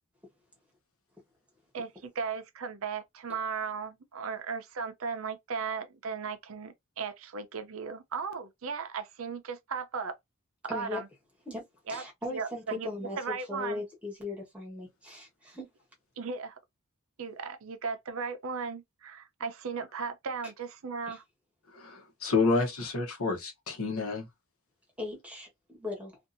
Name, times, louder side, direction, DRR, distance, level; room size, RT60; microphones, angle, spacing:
voice 1, 1.7-10.2 10.6-11.1 11.9-12.0 12.3-12.9 13.2-13.8 16.2-16.6 17.2-21.2, right 5 dB, 70° right, 0.6 m, -36 dB
voice 2, 10.7-11.0 11.5-11.6 11.9-15.7 21.1-21.2 25.0-26.2, left 2 dB, 5° right, 1.2 m, -38 dB
voice 3, 21.7-24.3, left 3 dB, 80° left, 1.0 m, -29 dB
2.6 x 2.5 x 2.5 m
head